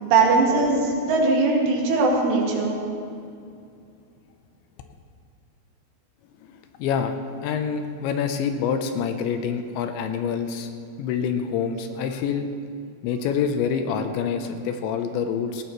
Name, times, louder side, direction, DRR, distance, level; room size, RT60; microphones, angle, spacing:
voice 1, 0.0-2.8, right 3 dB, 85° right, -2 dB, 4.6 m, -20 dB
voice 2, 6.4-7.1 7.4-10.7 11.0-12.5 13.0-15.6, left 7 dB, 80° left, 7 dB, 2.9 m, -26 dB
19.5 x 16.0 x 3.1 m, 2.5 s
omnidirectional pair, 5.5 m